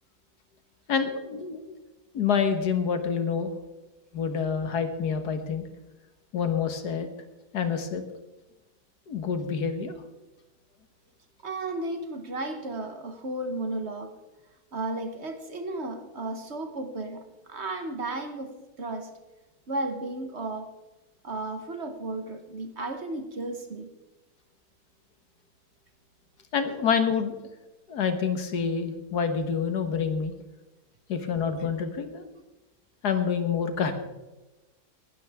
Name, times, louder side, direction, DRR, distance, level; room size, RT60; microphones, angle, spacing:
voice 1, 0.9-1.7 2.1-3.5 4.1-5.7 6.3-7.1 7.5-8.0 9.1-10.0 26.5-27.3 27.9-30.3 31.1-32.3 33.0-33.9, left 6 dB, 80° left, 8 dB, 1.9 m, -27 dB
voice 2, 11.4-14.2 14.7-19.1 19.7-20.7 21.2-23.9, right 2 dB, 45° right, 7 dB, 1.4 m, -34 dB
19.5 x 12.5 x 3.5 m, 1.1 s
omnidirectional pair, 1.7 m